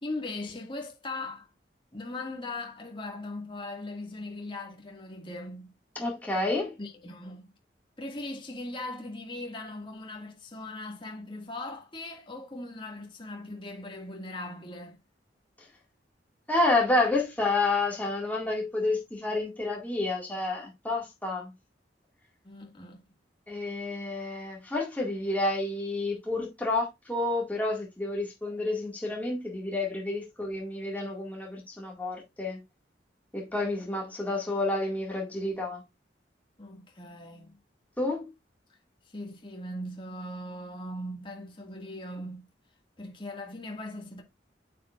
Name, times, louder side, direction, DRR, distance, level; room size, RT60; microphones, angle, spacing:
voice 1, 0.0-1.5 1.9-5.7 6.8-7.5 8.0-15.0 22.4-23.0 36.6-37.6 38.7-38.8 39.1-42.5 43.0-44.2, left 2 dB, 30° left, 1.8 m, -39 dB
voice 2, 6.0-6.7 16.5-21.5 23.5-32.6 33.3-35.8 38.0-38.3, left 2 dB, 10° left, 1.9 m, -29 dB
8.9 x 6.7 x 2.4 m
head